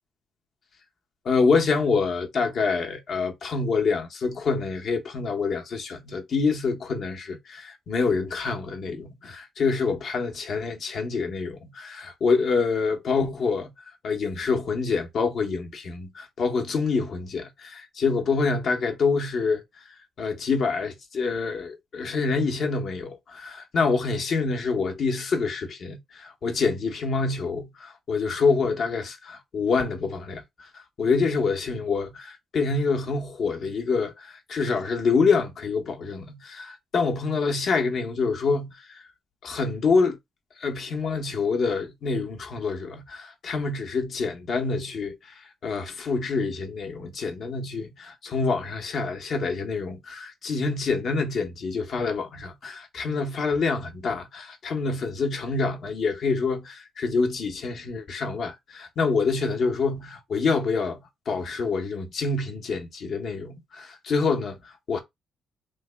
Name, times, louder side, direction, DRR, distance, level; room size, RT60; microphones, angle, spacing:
voice 1, 1.2-13.7 14.0-19.6 20.2-39.0 39.4-40.2 40.6-61.0 61.3-65.0, left 4 dB, 60° left, 0.8 m, -26 dB
3.2 x 2.1 x 3.3 m
cardioid pair, 90°, 0 cm